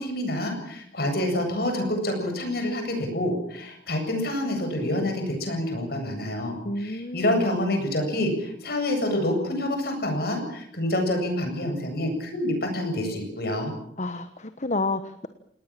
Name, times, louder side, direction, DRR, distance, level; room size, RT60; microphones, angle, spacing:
voice 1, 0.0-13.7, left 1 dB, 60° left, 5 dB, 8.0 m, -27 dB
voice 2, 6.6-7.3 14.0-15.3, left 2 dB, 40° left, 10 dB, 1.2 m, -30 dB
28.0 x 19.0 x 7.6 m, 0.71 s
head